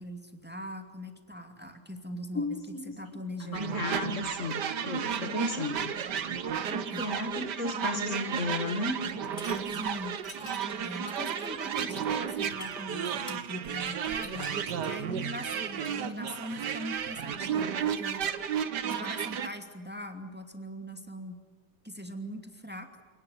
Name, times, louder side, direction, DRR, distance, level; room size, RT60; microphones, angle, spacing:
voice 1, 0.0-3.8 6.9-7.1 9.7-10.2 10.8-14.5 14.8-18.3 18.9-21.4 21.8-22.9, equal, 5° right, 5 dB, 2.5 m, -41 dB
voice 2, 2.3-5.9 6.7-9.0, left 3 dB, 50° left, 6 dB, 2.2 m, -34 dB
sound 1, 3.5-19.5, right 8 dB, 80° right, 1.8 m, -33 dB
sound 2, 9.1-9.6 10.1-16.0, left 2 dB, 30° left, 2.3 m, -47 dB
28.5 x 19.0 x 9.7 m, 1.3 s
omnidirectional pair, 1.8 m